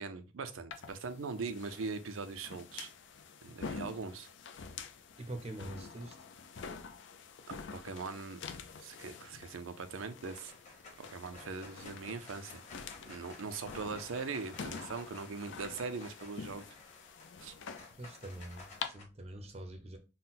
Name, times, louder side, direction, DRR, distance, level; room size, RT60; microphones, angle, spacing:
voice 1, 0.0-2.9 3.4-4.3 7.5-8.4 8.8-10.5 11.0-12.6 13.1-16.6 17.4-17.5, right 4 dB, 85° right, 0.5 m, -41 dB
sound 1, 0.7-18.9, left 5 dB, 65° left, 0.4 m, -47 dB
voice 2, 5.2-6.2 18.0-20.0, right 1 dB, 30° right, 0.5 m, -44 dB
sound 2, 9.5-9.9 10.2-19.0, left 3 dB, 35° left, 1.2 m, -54 dB
3.8 x 2.1 x 4.0 m
head